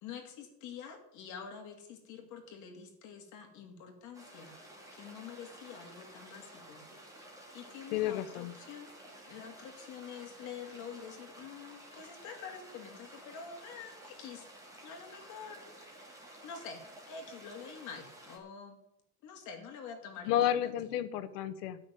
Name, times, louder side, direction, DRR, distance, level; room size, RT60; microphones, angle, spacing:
voice 1, 0.0-4.5 4.9-6.8 7.2-7.3 7.5-8.9 9.3-14.5 14.8-16.1 16.4-18.8 19.2-20.8, left 6 dB, 40° left, 3 dB, 2.6 m, -47 dB
sound 1, 4.1-18.4, right 1 dB, 5° right, 2.3 m, -53 dB
voice 2, 7.9-8.5 20.3-21.8, left 11 dB, 75° left, 12 dB, 1.3 m, -31 dB
12.0 x 6.4 x 9.1 m, 0.81 s
cardioid pair, 170°, 47 cm